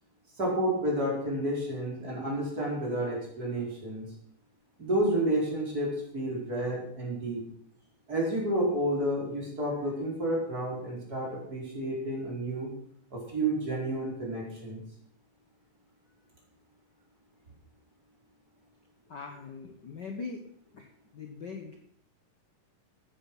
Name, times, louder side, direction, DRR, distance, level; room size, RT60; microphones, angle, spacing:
voice 1, 0.4-4.1 4.8-7.4 8.1-12.7 13.1-14.8, right 1 dB, 25° right, -3 dB, 4.9 m, -30 dB
voice 2, 19.1-20.4 20.7-21.8, left 4 dB, 65° left, 3 dB, 1.0 m, -41 dB
15.0 x 9.4 x 6.0 m, 0.69 s
omnidirectional pair, 3.9 m